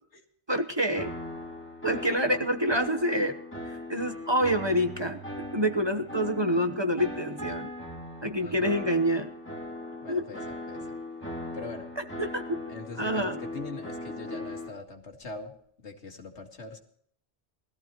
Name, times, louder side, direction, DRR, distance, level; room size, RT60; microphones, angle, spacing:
voice 1, 0.5-1.1 1.8-3.4 3.6-7.7 8.2-9.3 10.1-10.3 12.2-12.6 13.0-13.4, equal, 25° right, 7 dB, 1.0 m, -27 dB
sound 1, 0.9-14.7, left 1 dB, 10° left, 2.4 m, -39 dB
voice 2, 8.4-8.7 10.0-11.0 11.5-11.9 12.7-15.5 15.8-16.8, left 3 dB, 85° left, 3 dB, 2.2 m, -42 dB
20.0 x 14.0 x 3.0 m, 0.63 s
omnidirectional pair, 1.1 m